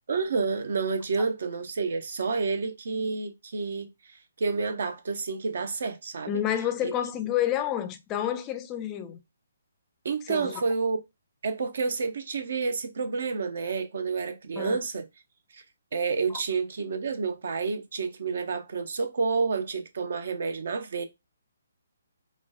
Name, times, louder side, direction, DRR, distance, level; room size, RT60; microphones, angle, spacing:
voice 1, 0.1-3.9 4.4-6.4 6.8-6.9 10.0-11.0 11.4-15.0 15.5-15.6 15.9-21.0, right 4 dB, 50° right, 0.6 m, -29 dB
voice 2, 6.3-9.2 10.3-10.6 14.6-14.8, left 11 dB, 20° left, 0.4 m, -29 dB
5.0 x 2.2 x 2.3 m
figure-of-eight pair, 135°, 0 cm